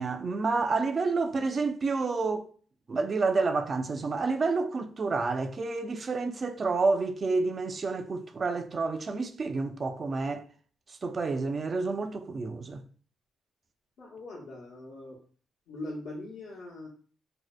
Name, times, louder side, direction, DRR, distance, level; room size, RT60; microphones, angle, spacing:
voice 1, 0.0-2.5 2.9-10.5 11.0-12.8, right 3 dB, 40° right, 0.3 m, -29 dB
voice 2, 14.0-15.2 15.7-16.9, left 2 dB, 70° left, 0.8 m, -41 dB
2.5 x 2.0 x 2.3 m
cardioid pair, 90°, 0 cm